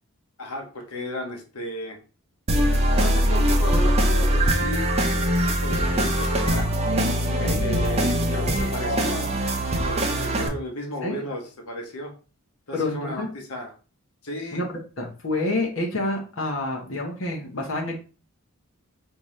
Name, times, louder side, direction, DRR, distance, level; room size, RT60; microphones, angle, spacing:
voice 1, 0.4-2.0 3.0-6.7 7.6-9.3 9.8-12.1 12.7-13.7 14.2-14.6, left 1 dB, 85° left, 1 dB, 1.0 m, -34 dB
sound 1, 2.5-10.5, equal, 30° right, 0.7 m, -22 dB
voice 2, 7.3-7.6 11.0-11.1 12.7-13.3 14.5-14.7 15.0-17.9, left 2 dB, 60° left, 0 dB, 1.0 m, -28 dB
5.3 x 2.8 x 3.1 m, 0.35 s
head